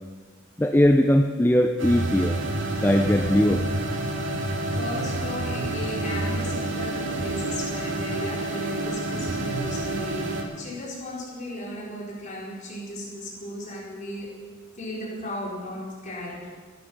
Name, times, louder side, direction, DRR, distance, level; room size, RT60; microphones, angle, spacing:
voice 1, 0.6-2.4 2.8-3.6, left 1 dB, 10° left, 5 dB, 0.5 m, -20 dB
sound 1, 1.8-10.4, right 2 dB, 65° right, 2.2 m, -28 dB
voice 2, 4.7-14.4 14.8-16.5, left 1 dB, 40° left, -4 dB, 4.2 m, -36 dB
15.0 x 12.0 x 6.1 m, 1.5 s
head